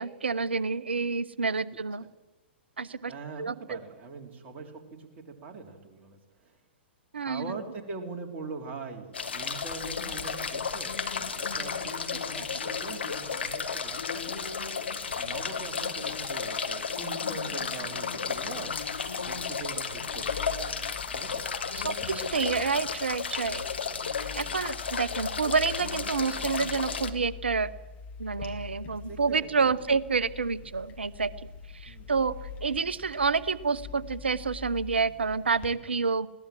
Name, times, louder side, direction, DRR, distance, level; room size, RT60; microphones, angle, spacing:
voice 1, 0.0-2.0 2.8-3.1 3.4-3.8 7.1-7.6 21.8-23.6 24.3-27.7 28.2-31.3 31.7-36.3, right 5 dB, 70° right, 18 dB, 0.9 m, -28 dB
voice 2, 3.1-6.6 7.2-11.7 12.0-14.4 15.2-18.7 19.2-20.4 21.1-21.5 29.1-29.7 31.8-32.1, right 4 dB, 30° right, 2 dB, 3.4 m, -42 dB
sound 1, 9.1-27.1, left 6 dB, 70° left, 1.8 m, -33 dB
sound 2, 18.3-35.7, left 6 dB, 25° left, 2.7 m, -45 dB
21.0 x 17.0 x 7.7 m, 1.1 s
figure-of-eight pair, 105°, 6 cm